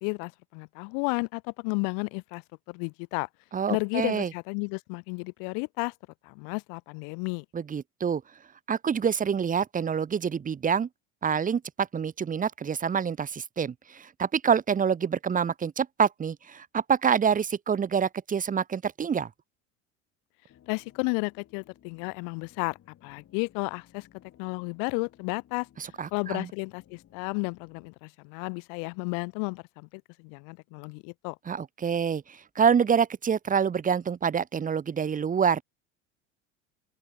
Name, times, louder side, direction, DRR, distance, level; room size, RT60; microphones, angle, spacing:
voice 1, 0.0-2.4 2.7-3.3 3.7-5.9 6.2-7.4 20.7-22.8 23.0-24.1 24.4-25.7 26.1-31.4, left 38 dB, 65° left, 1.2 m, -32 dB
voice 2, 3.5-4.3 7.5-8.2 8.7-10.9 11.2-19.3 25.8-26.5 31.5-32.2 32.6-35.6, right 7 dB, 20° right, 1.0 m, -26 dB
sound 1, 20.5-27.9, left 10 dB, 45° left, 7.9 m, -59 dB
open air
hypercardioid pair, 85°, 36 cm